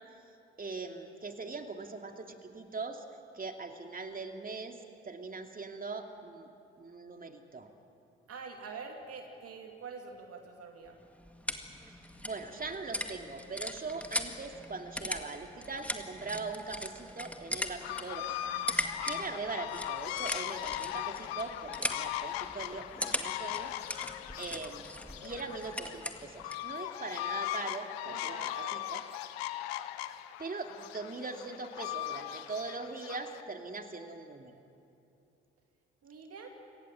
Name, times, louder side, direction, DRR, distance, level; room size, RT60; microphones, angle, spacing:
voice 1, 0.6-3.0 3.3-4.8 5.0-6.5 6.8-7.7 11.9-23.7 24.4-24.9 25.2-29.0 30.4-34.5, right 3 dB, 30° right, 5 dB, 2.6 m, -41 dB
voice 2, 8.3-11.0 28.1-28.8 36.0-36.5, right 5 dB, 50° right, 3 dB, 2.7 m, -45 dB
sound 1, 10.9-26.7, left 1 dB, 5° left, 2.0 m, -40 dB
sound 2, 17.8-33.4, left 14 dB, 85° left, 0.8 m, -39 dB
28.5 x 18.0 x 7.6 m, 2.6 s
hypercardioid pair, 50°, 30 cm